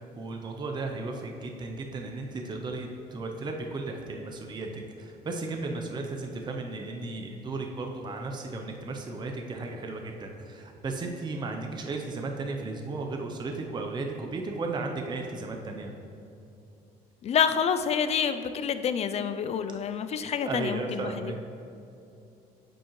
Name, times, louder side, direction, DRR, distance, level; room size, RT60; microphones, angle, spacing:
voice 1, 0.0-15.9 20.4-21.4, right 3 dB, 25° right, 2 dB, 0.6 m, -35 dB
voice 2, 17.2-21.4, left 7 dB, 40° left, 10 dB, 0.3 m, -28 dB
8.6 x 5.1 x 3.0 m, 2.7 s
cardioid pair, 110°, 17 cm